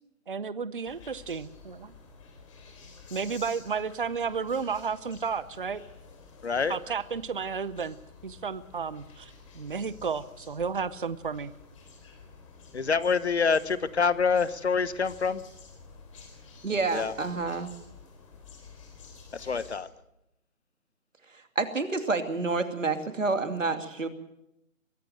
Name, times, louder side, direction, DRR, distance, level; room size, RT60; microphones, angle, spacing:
voice 1, 0.3-1.9 3.1-5.8 6.7-8.0 8.2-11.5, right 5 dB, 40° right, 17 dB, 0.7 m, -32 dB
sound 1, 0.8-19.8, left 4 dB, 25° left, 3.8 m, -51 dB
voice 2, 6.4-6.8 12.7-15.4 16.9-17.1 19.3-19.9, left 5 dB, 50° left, 17 dB, 1.1 m, -26 dB
voice 3, 16.6-17.7 21.6-24.1, right 3 dB, 65° right, 8 dB, 2.7 m, -28 dB
22.5 x 16.0 x 7.7 m, 0.83 s
figure-of-eight pair, 155°, 42 cm